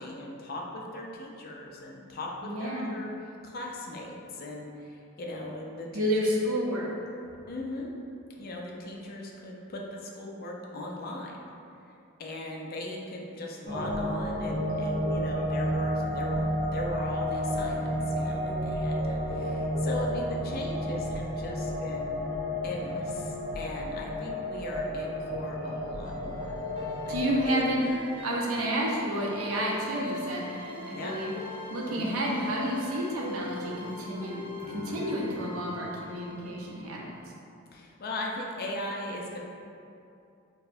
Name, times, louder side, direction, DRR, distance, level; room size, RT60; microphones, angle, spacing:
voice 1, 0.0-3.1 3.4-6.1 7.5-7.9 8.4-11.3 12.2-22.2 22.6-26.6 27.1-27.6 30.9-31.1 31.9-32.3 37.7-39.4, left 1 dB, 45° left, -1 dB, 0.4 m, -38 dB
voice 2, 2.4-3.0 5.9-6.9 27.1-27.9 28.2-31.3 31.7-34.4 34.7-37.1, equal, 80° right, -3 dB, 0.6 m, -30 dB
sound 1, 13.6-27.4, equal, 45° right, 0.8 m, -31 dB
sound 2, 26.0-37.3, left 2 dB, 25° right, 0.4 m, -41 dB
4.4 x 2.0 x 2.6 m, 2.6 s
head